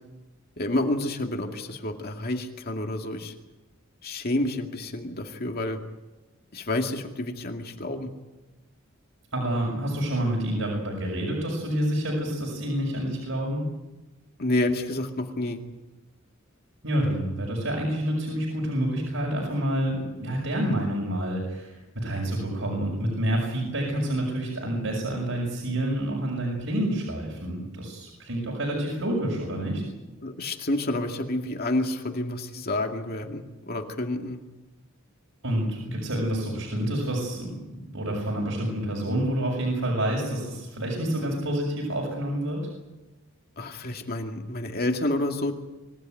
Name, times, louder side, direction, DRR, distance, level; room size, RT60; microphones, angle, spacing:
voice 1, 0.6-3.3 4.0-5.8 6.5-8.1 14.4-15.6 30.2-34.4 43.6-45.5, left 1 dB, 50° left, 3 dB, 2.3 m, -29 dB
voice 2, 9.3-13.7 16.8-29.8 35.4-42.6, right 1 dB, 75° right, -1 dB, 6.6 m, -28 dB
25.5 x 16.5 x 9.3 m, 1.1 s
head